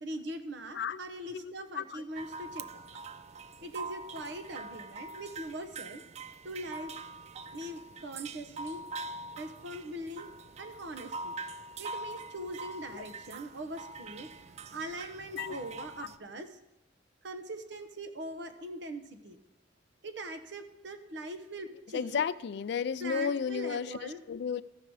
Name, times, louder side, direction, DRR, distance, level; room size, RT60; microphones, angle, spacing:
voice 1, 0.0-2.9 3.6-6.0 6.4-6.9 7.5-8.8 9.4-10.3 10.6-11.3 11.8-16.6 17.2-19.4 20.0-22.2 23.0-24.2, right 1 dB, 65° right, 0.9 m, -41 dB
voice 2, 1.3-2.0 15.3-15.6 21.9-24.6, left 7 dB, 60° left, 0.3 m, -33 dB
sound 1, 2.2-16.2, right 3 dB, 35° right, 0.3 m, -44 dB
14.0 x 5.8 x 4.7 m
head